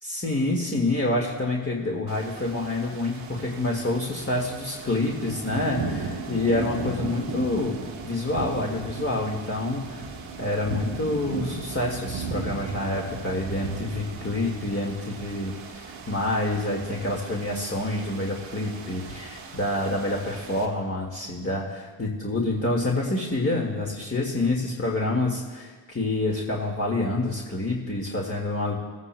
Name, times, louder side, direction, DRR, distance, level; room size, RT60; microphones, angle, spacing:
voice 1, 0.0-7.8 8.0-10.1 10.4-28.7, left 2 dB, 25° left, -2 dB, 1.9 m, -27 dB
sound 1, 2.1-20.7, right 4 dB, 75° right, 1.4 m, -37 dB
18.5 x 9.5 x 2.2 m, 1.4 s
supercardioid pair, 45°, 49 cm